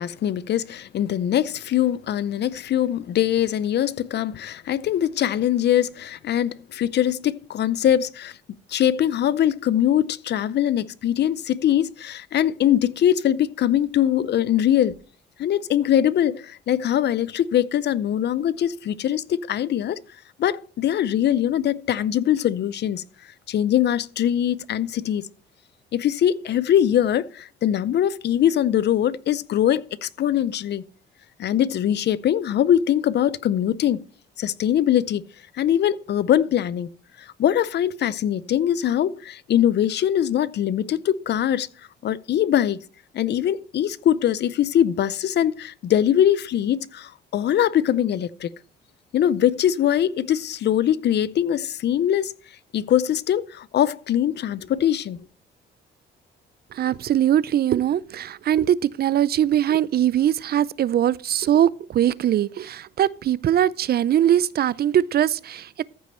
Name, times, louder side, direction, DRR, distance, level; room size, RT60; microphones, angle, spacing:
voice 1, 0.0-8.4 8.7-15.0 15.4-20.0 20.4-23.0 23.5-25.2 25.9-30.8 31.4-34.0 34.4-35.2 35.6-36.9 37.2-41.7 42.0-42.8 43.1-48.5 49.1-52.3 52.7-55.2, left 10 dB, 60° left, 0.6 m, -22 dB
voice 2, 56.7-65.8, right 11 dB, 50° right, 0.4 m, -21 dB
14.0 x 5.3 x 4.3 m
cardioid pair, 90°, 20 cm